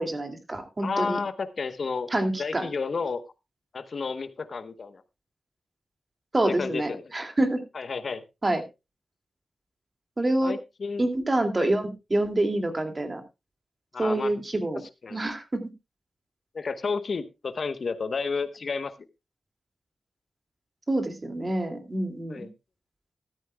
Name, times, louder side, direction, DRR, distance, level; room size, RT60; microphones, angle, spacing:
voice 1, 0.0-1.2 2.1-2.7 6.3-7.6 8.4-8.6 10.2-10.5 11.0-13.2 14.0-14.8 15.1-15.6 20.9-22.5, right 1 dB, 30° right, 7 dB, 2.4 m, -27 dB
voice 2, 0.8-2.1 2.4-3.2 3.7-5.0 6.4-7.0 7.7-8.2 10.4-11.1 11.6-11.8 13.9-14.3 15.0-15.2 16.5-18.9 22.3-22.5, left 4 dB, 60° left, 12 dB, 1.0 m, -31 dB
13.5 x 13.0 x 2.3 m, 0.25 s
wide cardioid pair, 95°, 0 cm